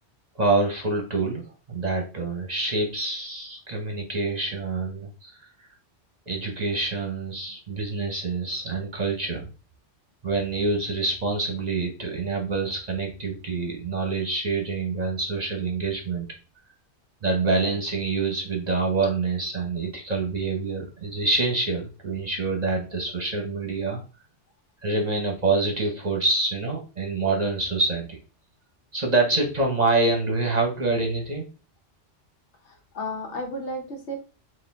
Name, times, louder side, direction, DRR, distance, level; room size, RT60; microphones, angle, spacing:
voice 1, 0.3-5.3 5.6-5.7 6.3-9.5 10.2-16.3 17.2-24.0 24.8-28.2 28.9-31.5, right 3 dB, 40° right, 2 dB, 0.8 m, -26 dB
voice 2, 32.6-34.2, left 1 dB, 75° left, 2 dB, 1.2 m, -33 dB
4.2 x 2.5 x 3.5 m, 0.34 s
omnidirectional pair, 1.2 m